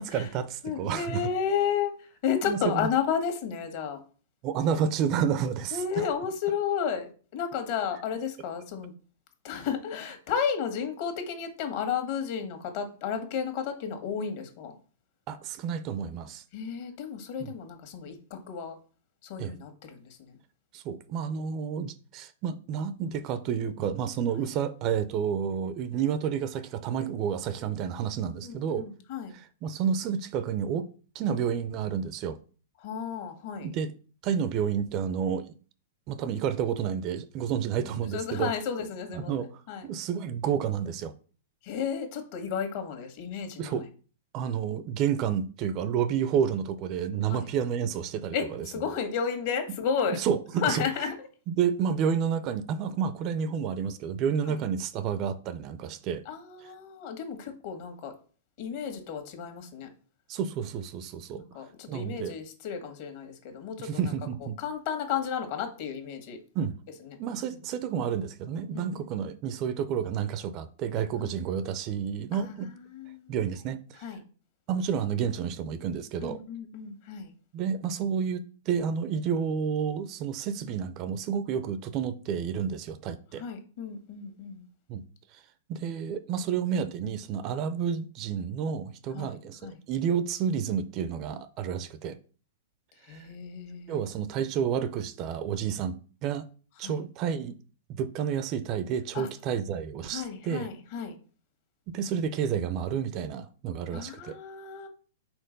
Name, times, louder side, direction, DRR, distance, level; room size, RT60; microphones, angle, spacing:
voice 1, 0.0-1.2 2.4-2.9 4.4-6.0 15.3-16.4 17.4-17.5 19.4-19.5 20.7-28.9 29.3-30.9 31.1-32.4 33.6-33.9 34.2-35.5 36.1-38.5 39.1-39.5 39.8-41.1 43.6-43.8 44.3-48.4 50.2-50.8 51.5-56.2 60.3-61.4 61.9-62.4 63.8-64.6 66.5-66.7 67.2-72.7 73.3-74.0 74.7-76.4 77.5-83.4 84.9-85.0 85.3-85.4 85.7-92.2 93.1-93.3 93.9-96.0 96.2-96.4 96.8-97.5 97.9-100.7 101.9-104.4, right 7 dB, 35° right, 0.5 m, -30 dB
voice 2, 0.6-4.0 5.7-8.9 9.4-14.7 16.5-18.8 19.2-20.4 28.4-29.4 32.8-33.7 37.7-39.9 41.6-43.8 47.2-47.5 48.3-50.2 50.6-51.3 54.5-54.6 56.3-58.1 58.6-59.9 61.3-63.9 64.6-66.4 67.1-67.2 67.5-67.6 68.7-68.9 71.2-71.3 72.3-73.4 74.0-74.2 76.2-77.3 83.4-84.7 89.1-89.7 93.0-94.0 96.8-97.0 99.1-99.3 100.0-101.1 103.9-104.9, left 7 dB, 50° left, 1.7 m, -33 dB
4.4 x 4.2 x 5.3 m
hypercardioid pair, 135°, 0 cm